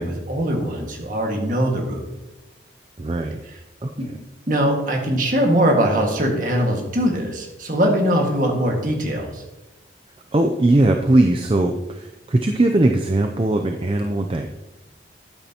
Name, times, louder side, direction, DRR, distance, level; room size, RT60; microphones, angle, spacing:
voice 1, 0.0-2.0 4.0-4.1 4.5-9.4, equal, 45° right, 1 dB, 1.8 m, -21 dB
voice 2, 3.0-3.4 3.8-3.9 10.3-14.5, right 2 dB, 30° right, 4 dB, 0.4 m, -19 dB
12.5 x 9.0 x 2.9 m, 1.0 s
head